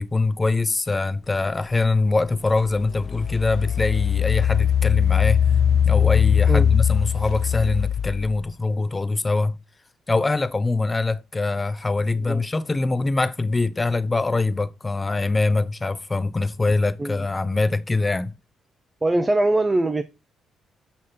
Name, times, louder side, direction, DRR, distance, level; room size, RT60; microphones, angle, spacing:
voice 1, 0.0-5.4 5.8-9.6 10.1-18.3, left 3 dB, 20° left, 0.8 m, -23 dB
Engine, 1.8-1.9 2.5-8.5, left 8 dB, 60° left, 0.4 m, -21 dB
voice 2, 19.0-20.0, right 2 dB, 20° right, 0.8 m, -22 dB
8.8 x 5.6 x 4.2 m
cardioid pair, 90°, 0 cm